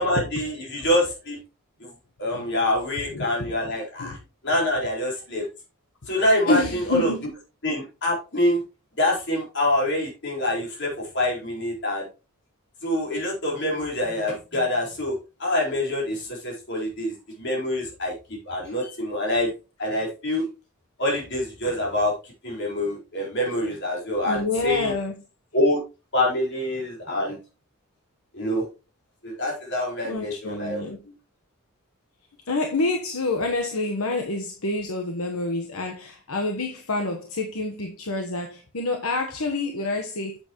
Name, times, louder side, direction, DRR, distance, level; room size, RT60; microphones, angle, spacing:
voice 1, 0.0-1.4 1.8-1.9 2.2-4.2 4.4-5.5 6.1-7.1 7.6-8.6 9.0-12.0 12.8-18.1 18.4-19.5 19.8-20.5 21.0-24.9 25.5-25.8 26.1-27.4 28.3-28.6 29.2-30.9, left 1 dB, 55° left, 4.5 m, -25 dB
voice 2, 3.1-3.5 4.0-4.2 6.5-7.3 24.3-25.1 30.0-31.0 32.5-40.4, left 2 dB, 80° left, 1.2 m, -27 dB
8.6 x 8.2 x 3.0 m
head